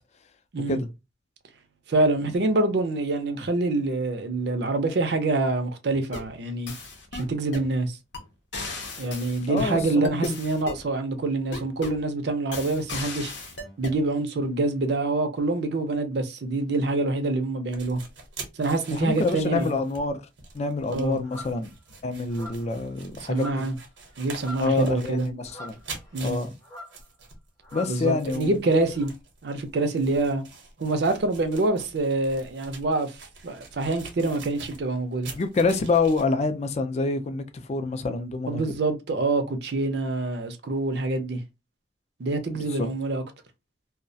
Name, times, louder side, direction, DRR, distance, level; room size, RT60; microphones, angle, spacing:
voice 1, 1.9-6.7 7.1-8.0 9.0-13.3 13.8-18.0 18.6-19.8 20.9-21.2 23.2-23.8 24.2-25.3 26.1-26.4 27.9-29.1 29.4-30.4 30.8-35.3 38.5-41.4 42.2-43.2, right 2 dB, 60° right, 0.5 m, -26 dB
sound 1, 5.9-6.3 6.7-7.7 8.1-8.2 8.5-10.8 11.5-12.0 12.5-14.0, left 3 dB, 80° left, 0.7 m, -37 dB
voice 2, 9.5-10.4 18.9-20.2 20.5-21.7 22.0-23.7 24.6-25.8 26.2-26.5 27.7-28.6 35.4-38.6 42.5-42.9, left 3 dB, 35° left, 0.3 m, -27 dB
sound 2, 17.7-36.2, right 4 dB, 85° right, 0.8 m, -45 dB
sound 3, 21.2-21.6 22.3-22.8 23.3-23.8 24.1-24.8 25.5-26.3 26.6-27.0 27.6-28.0 28.9-29.1, left 1 dB, 20° left, 0.8 m, -43 dB
2.3 x 2.1 x 2.6 m
head